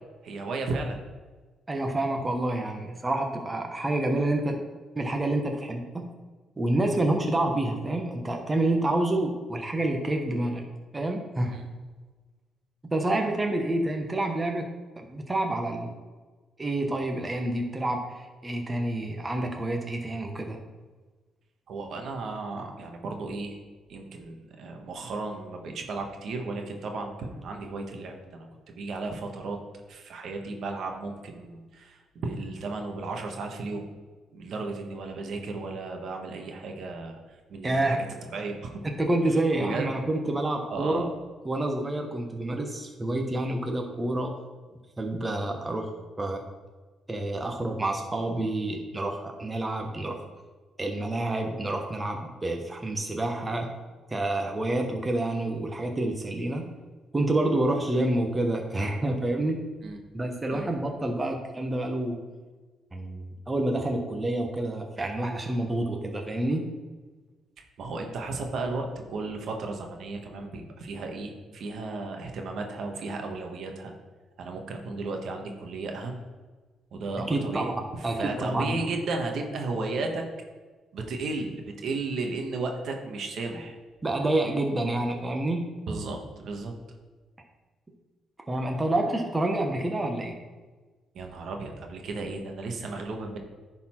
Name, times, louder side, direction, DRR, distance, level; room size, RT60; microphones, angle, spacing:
voice 1, 0.2-1.0 11.4-11.7 21.7-23.6 23.9-29.6 29.9-33.8 34.3-37.2 37.5-38.0 38.3-38.8 39.6-39.8 40.7-41.1 59.8-60.0 60.5-60.7 67.8-73.9 74.4-76.2 76.9-80.2 80.9-83.7 85.9-86.7 91.1-93.4, right 3 dB, 65° right, 3 dB, 1.3 m, -34 dB
voice 2, 1.7-4.6 5.0-6.1 6.6-10.6 10.9-11.6 12.9-14.7 15.0-15.9 16.6-20.6 37.6-38.0 39.0-41.0 41.4-44.4 45.0-45.9 46.2-46.4 47.1-50.2 50.8-53.7 54.1-56.7 57.1-59.6 60.1-62.2 62.9-66.7 77.3-77.7 78.0-78.7 84.0-85.6 88.5-90.4, right 1 dB, 20° right, 2 dB, 1.1 m, -28 dB
10.5 x 4.2 x 4.4 m, 1.3 s
cardioid pair, 85°, 0 cm